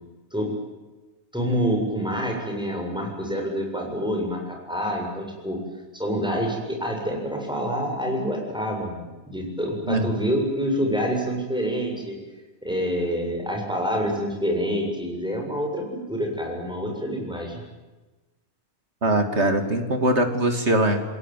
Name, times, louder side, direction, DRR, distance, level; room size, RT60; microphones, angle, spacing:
voice 1, 1.3-5.6 5.9-12.2 12.6-17.6, equal, 5° right, 1 dB, 7.4 m, -27 dB
voice 2, 19.0-21.0, right 1 dB, 70° right, 6 dB, 3.1 m, -21 dB
28.5 x 21.5 x 9.4 m, 1.2 s
omnidirectional pair, 1.2 m